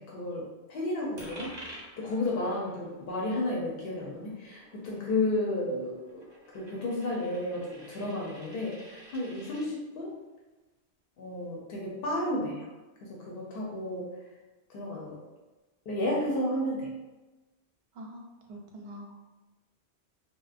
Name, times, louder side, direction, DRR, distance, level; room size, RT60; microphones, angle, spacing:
voice 1, 0.0-1.5 2.0-10.1 11.2-12.7 13.0-14.1 14.7-15.2 15.9-16.9, left 1 dB, 65° left, -3 dB, 0.7 m, -32 dB
Coin (dropping), 1.2-9.7, equal, 35° right, 0.4 m, -50 dB
voice 2, 17.9-19.3, equal, 90° right, 0 dB, 0.9 m, -45 dB
2.8 x 2.0 x 2.4 m, 1.1 s
omnidirectional pair, 1.1 m